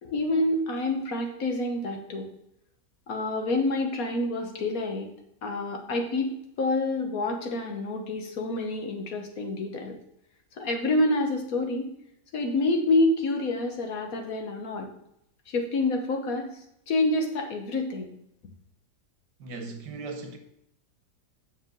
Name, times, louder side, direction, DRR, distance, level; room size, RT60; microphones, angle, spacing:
voice 1, 0.0-2.2 3.1-5.1 5.4-6.3 6.6-10.0 10.6-11.9 12.3-14.9 15.5-16.5 16.9-18.1, left 2 dB, 60° left, 1.6 m, -27 dB
voice 2, 19.4-20.4, right 3 dB, 90° right, 1.6 m, -38 dB
7.6 x 6.2 x 3.8 m
omnidirectional pair, 1.8 m